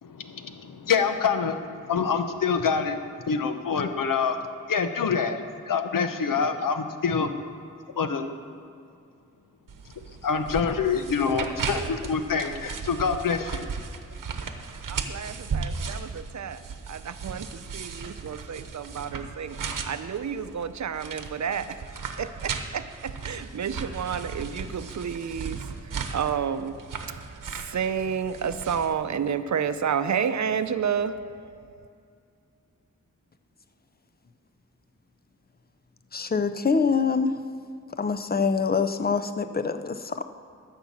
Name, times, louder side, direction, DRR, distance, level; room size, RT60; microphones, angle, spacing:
voice 1, 0.0-3.0 3.3-4.4 4.7-5.4 5.7-7.3 8.0-8.3 10.2-13.7, left 6 dB, 90° left, 0.8 m, -26 dB
sound 1, 9.7-28.9, right 5 dB, 80° right, 0.9 m, -36 dB
voice 2, 14.9-21.8 22.2-31.9, right 7 dB, 60° right, 0.6 m, -31 dB
voice 3, 36.1-37.4 38.0-40.2, left 5 dB, 30° left, 0.6 m, -25 dB
13.5 x 5.8 x 7.2 m
wide cardioid pair, 80°, 32 cm